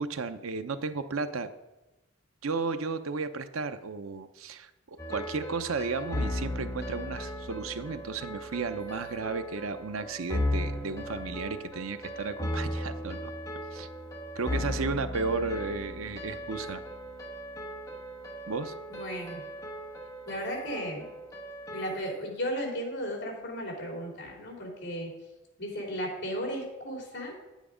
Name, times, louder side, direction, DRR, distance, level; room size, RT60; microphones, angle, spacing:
voice 1, 0.0-1.5 2.4-13.3 13.7-13.9 14.4-16.8 18.5-18.7, right 4 dB, 75° right, 10 dB, 0.7 m, -34 dB
sound 1, 5.0-22.0, left 1 dB, 15° left, 1.3 m, -36 dB
voice 2, 18.9-19.4 20.3-21.1 21.7-25.1 25.6-27.4, equal, 50° left, -1 dB, 3.5 m, -35 dB
9.9 x 9.3 x 5.0 m, 1.0 s
head